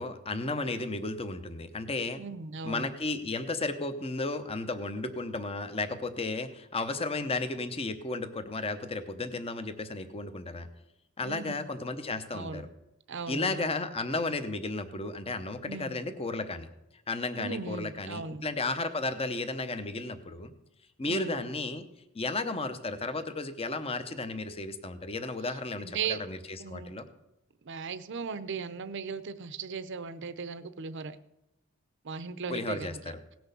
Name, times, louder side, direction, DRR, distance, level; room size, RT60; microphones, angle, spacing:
voice 1, 0.0-2.2 2.6-10.7 11.2-12.7 13.3-16.7 17.1-20.5 21.0-21.8 22.1-26.4 26.7-27.1 32.5-33.2, left 3 dB, 30° left, 9 dB, 0.8 m, -33 dB
voice 2, 2.2-2.9 11.2-11.6 12.3-12.7 13.1-13.6 15.6-16.0 17.4-18.5 21.1-21.4 25.8-26.2 26.6-26.9 27.6-31.2 32.0-33.1, right 5 dB, 60° right, 12 dB, 0.6 m, -37 dB
17.0 x 6.1 x 6.8 m, 0.86 s
head